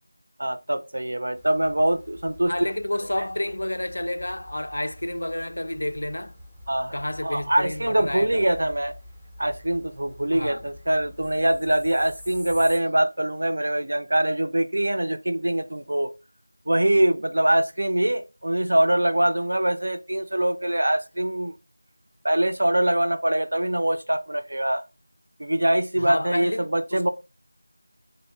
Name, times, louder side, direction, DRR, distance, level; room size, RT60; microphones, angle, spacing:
voice 1, 0.4-2.5 6.7-6.9 7.2-8.9 9.4-16.1 16.7-21.5 22.2-24.8 25.4-27.1, right 1 dB, 60° right, 0.4 m, -23 dB
sound 1, 1.3-12.8, left 1 dB, ahead, 0.5 m, -46 dB
voice 2, 2.5-6.4 6.9-8.5 10.3-10.7 26.0-27.1, left 1 dB, 65° left, 0.3 m, -30 dB
2.5 x 2.0 x 3.4 m
figure-of-eight pair, 170°, 0 cm